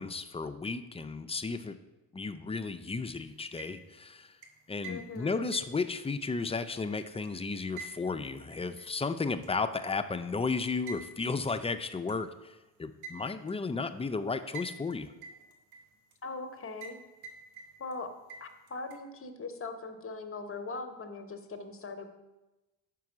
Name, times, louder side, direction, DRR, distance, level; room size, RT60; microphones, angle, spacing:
voice 1, 0.0-1.8 2.1-4.3 4.7-15.1, left 4 dB, 15° left, 9 dB, 0.4 m, -34 dB
sound 1, 3.4-4.0 4.4-7.3 7.8-9.0 9.4-9.5 10.9-11.1 11.5-11.6 12.1-12.2 13.0-13.6 14.5-14.9 15.2-16.1 16.8-17.0 17.2-18.0 18.3-19.0, right 4 dB, 75° right, 1.1 m, -46 dB
voice 2, 4.9-5.5 16.2-17.0 17.8-18.1 18.4-22.0, left 3 dB, 35° left, 7 dB, 1.0 m, -40 dB
5.3 x 4.6 x 6.1 m, 1.1 s
supercardioid pair, 60°, 40 cm